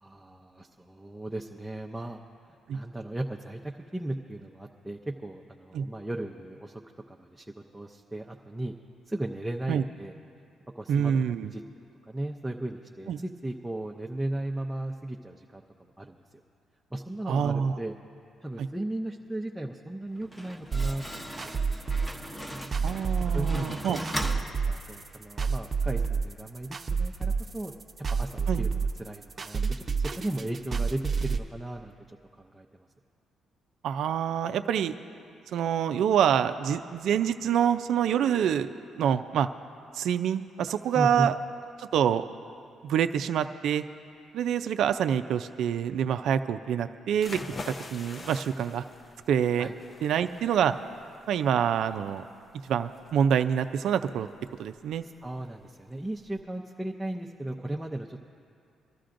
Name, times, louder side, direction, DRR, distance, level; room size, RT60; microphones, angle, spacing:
voice 1, 0.0-2.2 2.7-3.6 3.9-6.8 7.1-8.7 9.1-10.1 10.7-11.6 12.1-16.2 16.9-18.0 18.4-21.5 21.9-22.1 23.3-24.3 24.7-27.7 28.1-31.9 32.4-32.7 40.9-41.3 49.6-49.7 55.2-58.3, right 1 dB, 10° right, 0 dB, 0.6 m, -36 dB
voice 2, 10.9-11.5 13.1-13.2 17.3-17.7 18.6-18.7 22.8-24.0 28.5-28.6 33.8-34.9 35.5-39.5 39.9-41.3 41.8-42.3 42.8-43.8 44.3-47.4 47.7-48.8 49.3-49.7 50.0-50.7 51.3-52.2 52.6-54.3 54.6-55.0, right 8 dB, 75° right, 9 dB, 0.4 m, -26 dB
Slam, 20.1-25.2, equal, 15° left, 1.0 m, -39 dB
sound 1, 20.7-31.4, right 5 dB, 40° right, 0.8 m, -29 dB
sound 2, 47.1-56.4, left 3 dB, 35° left, 0.6 m, -45 dB
23.5 x 13.0 x 2.6 m, 2.4 s
cardioid pair, 90°, 0 cm